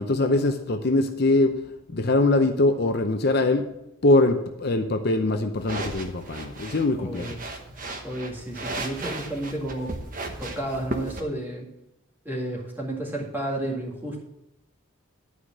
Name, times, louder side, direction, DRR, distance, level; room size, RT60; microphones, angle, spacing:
voice 1, 0.0-1.5 1.9-3.6 4.0-7.4, left 2 dB, 50° left, 6 dB, 0.7 m, -22 dB
sound 1, 5.6-11.2, right 2 dB, 40° right, 1.1 m, -36 dB
voice 2, 6.9-7.4 8.0-10.0 10.4-11.7 12.3-14.2, right 1 dB, 10° right, -3 dB, 1.9 m, -32 dB
11.5 x 4.9 x 7.3 m, 0.88 s
head